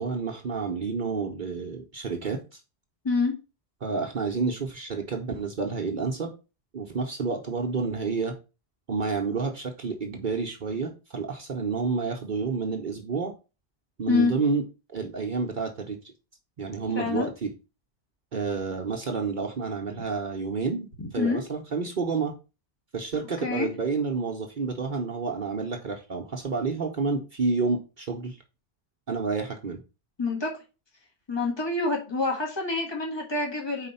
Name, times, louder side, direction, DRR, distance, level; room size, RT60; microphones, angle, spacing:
voice 1, 0.0-2.6 3.8-6.3 6.7-8.4 8.9-13.3 14.0-16.0 16.6-17.5 18.3-22.3 22.9-28.4 29.1-29.8, right 4 dB, 50° right, 0.9 m, -29 dB
voice 2, 16.9-17.3 21.0-21.4 23.4-23.7 30.2-30.5 31.3-33.9, left 3 dB, 25° left, 1.6 m, -26 dB
4.9 x 4.2 x 5.4 m
omnidirectional pair, 1.1 m